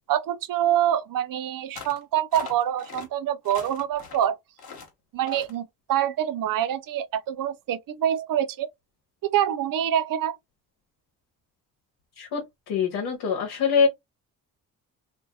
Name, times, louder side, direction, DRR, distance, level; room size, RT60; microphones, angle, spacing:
voice 1, 0.1-4.4 5.1-8.7 9.2-10.4, right 10 dB, 55° right, 0.5 m, -26 dB
sound 1, 1.8-2.0 2.3-3.1 3.4-4.3 4.6-4.9 5.3-5.6, left 5 dB, 65° left, 1.2 m, -41 dB
voice 2, 12.7-13.9, left 6 dB, 80° left, 1.0 m, -23 dB
2.6 x 2.6 x 2.3 m
supercardioid pair, 50°, 40 cm